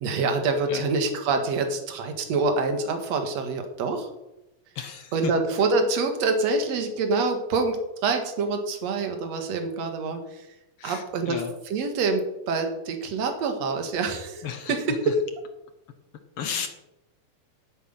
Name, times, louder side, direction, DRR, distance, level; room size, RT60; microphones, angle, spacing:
voice 1, 0.0-4.1 5.1-10.2 10.8-11.4 11.7-15.2, right 3 dB, 55° right, 5 dB, 2.6 m, -26 dB
voice 2, 4.7-5.3 10.8-11.5 14.4-15.1 16.4-16.7, left 8 dB, 70° left, 7 dB, 1.4 m, -33 dB
10.0 x 8.5 x 9.4 m, 0.96 s
omnidirectional pair, 4.0 m